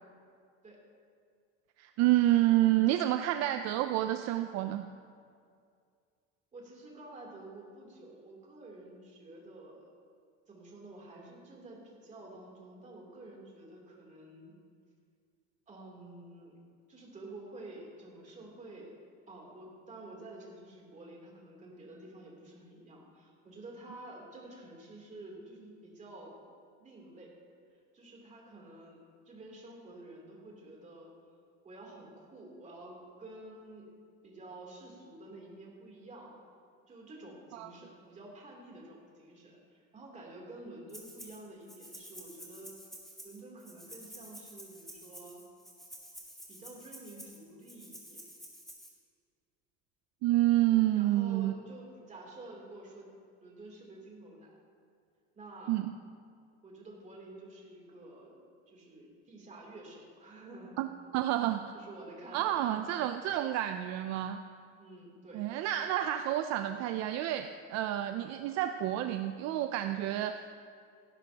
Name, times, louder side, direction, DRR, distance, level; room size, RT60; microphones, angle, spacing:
voice 1, 1.8-4.9 37.5-37.7 50.2-51.5 55.7-55.9 60.8-61.7 62.3-64.4 65.3-70.5, right 14 dB, 60° right, 8 dB, 0.5 m, -29 dB
voice 2, 6.5-9.9 10.5-14.5 15.7-16.6 16.9-19.0 19.3-26.4 26.8-27.3 27.9-31.1 31.6-34.0 34.2-36.4 36.9-42.7 43.2-45.4 46.5-48.2 50.9-53.1 53.4-54.6 55.3-55.8 56.6-60.8 61.7-62.8 64.8-65.5, right 2 dB, 25° right, -2 dB, 3.1 m, -50 dB
Rattle (instrument), 40.9-41.4 41.7-48.9, equal, ahead, 2.4 m, -50 dB
17.0 x 11.5 x 2.9 m, 2.2 s
cardioid pair, 130°, 30 cm